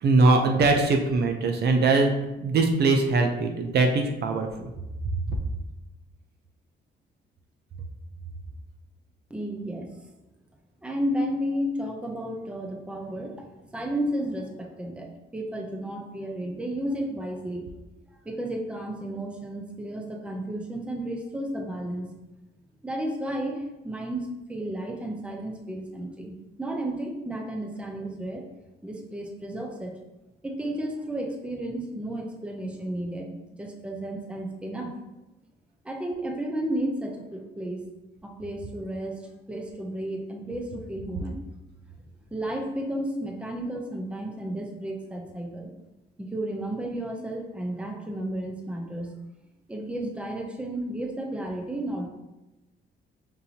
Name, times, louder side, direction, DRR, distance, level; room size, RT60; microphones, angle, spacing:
voice 1, 0.0-2.1 2.4-4.7, right 3 dB, 55° right, 4 dB, 0.6 m, -21 dB
voice 2, 9.3-9.9 10.8-13.5 13.7-17.6 18.2-22.1 22.8-28.5 28.8-29.9 30.4-33.3 33.6-34.9 35.8-37.8 38.2-39.1 39.5-41.4 42.3-45.7 46.2-49.1 49.7-52.1, right 1 dB, 5° right, 1 dB, 0.6 m, -32 dB
5.3 x 2.6 x 2.8 m, 0.99 s
cardioid pair, 90°, 20 cm